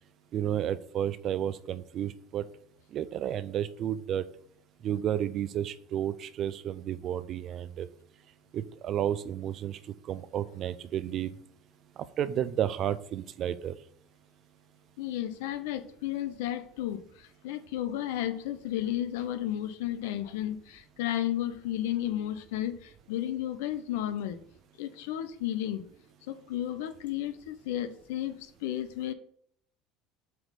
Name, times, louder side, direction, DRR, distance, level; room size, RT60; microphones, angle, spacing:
voice 1, 0.3-2.4 2.9-4.3 4.8-7.9 8.5-11.3 12.0-13.8, right 10 dB, 45° right, 0.5 m, -32 dB
voice 2, 15.0-24.4 24.8-25.9 26.3-29.1, left 12 dB, 85° left, 0.7 m, -33 dB
7.8 x 3.1 x 5.3 m
supercardioid pair, 110°, 0 cm